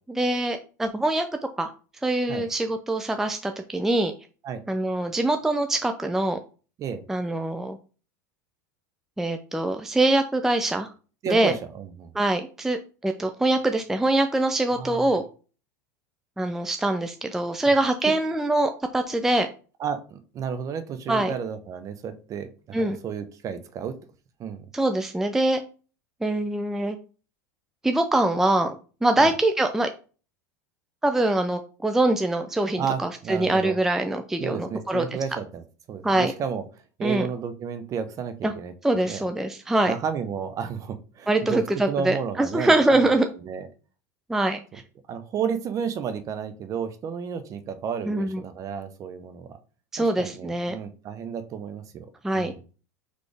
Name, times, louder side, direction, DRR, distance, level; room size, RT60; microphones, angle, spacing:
voice 1, 0.1-1.3 1.6-1.7 2.0-4.1 4.7-6.4 7.1-7.8 9.2-10.9 11.3-11.5 12.1-15.2 16.4-19.5 21.1-21.3 22.7-23.0 24.7-25.6 26.2-27.0 27.8-28.8 29.0-29.9 31.0-35.0 36.0-36.3 37.0-37.3 38.4-38.5 38.8-39.9 41.3-43.3 44.3-44.6 48.1-48.4 49.9-50.8 52.2-52.5, right 2 dB, 5° right, 6 dB, 0.4 m, -23 dB
voice 2, 11.2-12.1 14.7-15.1 19.8-23.9 24.4-24.7 29.2-29.3 32.8-33.8 34.4-36.6 37.0-38.7 39.1-39.2 39.9-41.6 41.9-43.1 43.5-43.7 45.1-49.5 50.0-52.1 52.3-52.6, right 7 dB, 40° right, 10 dB, 0.7 m, -32 dB
4.2 x 3.2 x 3.3 m, 0.36 s
hypercardioid pair, 100°, 9 cm